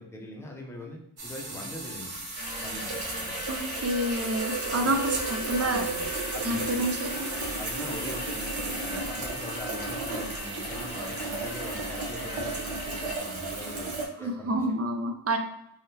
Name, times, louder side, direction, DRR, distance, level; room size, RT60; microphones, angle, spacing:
voice 1, 0.0-2.1 2.6-3.3 4.7-5.0 5.6-6.7 7.6-14.8, left 1 dB, 5° left, -1 dB, 0.7 m, -42 dB
sound 1, 1.2-14.1, right 3 dB, 65° right, 0.9 m, -34 dB
sound 2, 2.4-13.2, left 2 dB, 50° left, 0.9 m, -42 dB
voice 2, 3.5-5.9 6.4-7.3 14.2-15.4, right 1 dB, 30° right, 5 dB, 0.4 m, -28 dB
3.5 x 2.3 x 2.8 m, 0.82 s
wide cardioid pair, 70°, 50 cm